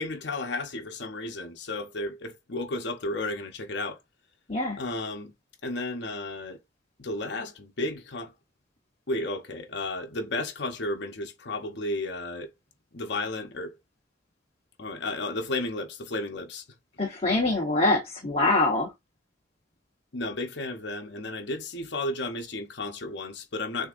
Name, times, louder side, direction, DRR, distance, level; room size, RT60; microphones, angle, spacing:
voice 1, 0.0-4.0 4.8-5.3 5.6-6.6 7.0-8.3 9.1-12.5 12.9-13.7 14.8-16.6 20.1-23.9, left 2 dB, 60° left, 0.9 m, -33 dB
voice 2, 17.0-18.9, left 2 dB, 30° left, 1.1 m, -24 dB
6.5 x 2.8 x 2.5 m
head